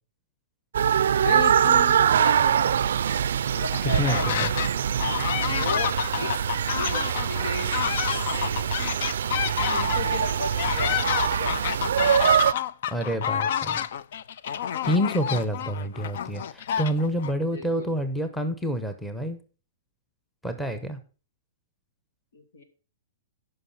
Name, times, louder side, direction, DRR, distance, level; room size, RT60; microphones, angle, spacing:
sound 1, 0.7-12.5, right 8 dB, 75° right, 0.4 m, -24 dB
voice 1, 1.0-2.7 3.5-4.6 5.5-7.7 8.0-8.8 9.6-11.6 17.5-17.9 22.3-22.6, left 3 dB, 85° left, 6 dB, 2.5 m, -35 dB
sound 2, 3.7-4.7 5.0-17.3, left 9 dB, 60° left, 0.5 m, -29 dB
voice 2, 3.8-4.5 12.9-13.8 14.8-19.4 20.4-21.0, equal, 5° left, 7 dB, 0.9 m, -28 dB
Wind instrument woodwind instrument, 4.8-10.2, left 2 dB, 45° left, 4.6 m, -58 dB
9.6 x 5.7 x 5.9 m, 0.36 s
hypercardioid pair, 155°, 0 cm